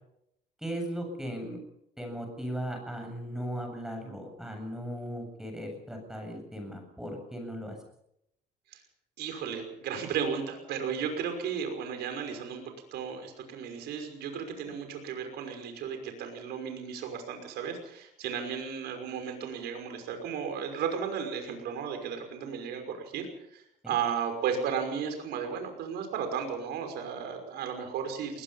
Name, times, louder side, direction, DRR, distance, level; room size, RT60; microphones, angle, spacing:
voice 1, 0.6-1.6 2.0-7.8 23.8-23.9, equal, 5° right, 3 dB, 7.8 m, -37 dB
voice 2, 9.2-28.4, right 7 dB, 75° right, 5 dB, 5.8 m, -34 dB
22.0 x 20.5 x 5.7 m, 0.78 s
cardioid pair, 110°, 17 cm